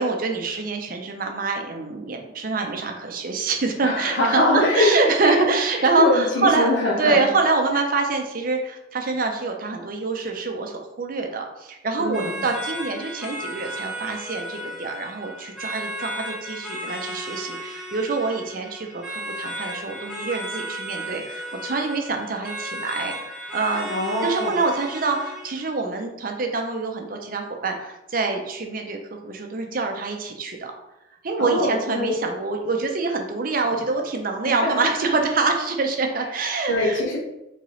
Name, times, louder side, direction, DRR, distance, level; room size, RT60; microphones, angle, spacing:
voice 1, 0.0-6.7 7.0-23.9 24.2-30.7 31.2-37.0, right 3 dB, 50° right, 3 dB, 0.6 m, -25 dB
voice 2, 3.8-5.4 6.0-7.2 12.0-12.4 23.9-24.6 31.4-32.2 34.4-34.7 35.0-35.1 36.7-37.2, left 1 dB, 80° left, -2 dB, 1.3 m, -22 dB
sound 1, 12.1-25.7, equal, ahead, 0.9 m, -34 dB
4.3 x 3.8 x 3.1 m, 0.90 s
head